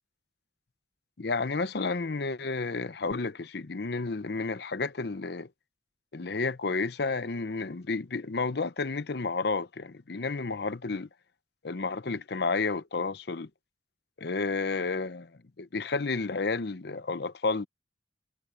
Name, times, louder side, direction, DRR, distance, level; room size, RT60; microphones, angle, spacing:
voice 1, 1.2-5.5 6.1-11.1 11.6-13.5 14.2-15.3 15.6-17.7, left 4 dB, 65° left, 0.8 m, -31 dB
head